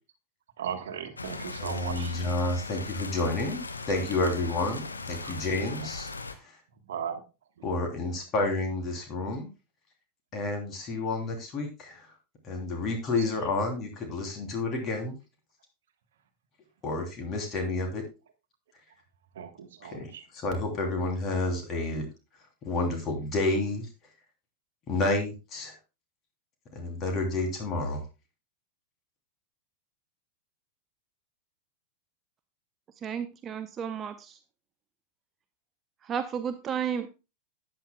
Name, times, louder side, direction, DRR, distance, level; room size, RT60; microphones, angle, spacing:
voice 1, 0.6-2.1 5.2-5.3 6.9-7.2 19.4-20.2, right 8 dB, 60° right, 1.3 m, -36 dB
sound 1, 1.2-6.4, left 3 dB, 80° left, 0.9 m, -39 dB
voice 2, 1.6-3.6 3.9-6.1 7.6-9.5 10.3-12.1 12.4-15.1 16.8-18.0 19.8-22.1 22.6-23.9 24.9-25.7 26.7-28.0, left 2 dB, 30° left, 3.1 m, -30 dB
voice 3, 33.0-34.4 36.0-37.1, right 8 dB, 25° right, 0.7 m, -33 dB
13.0 x 8.8 x 2.3 m
figure-of-eight pair, 90°, 0 cm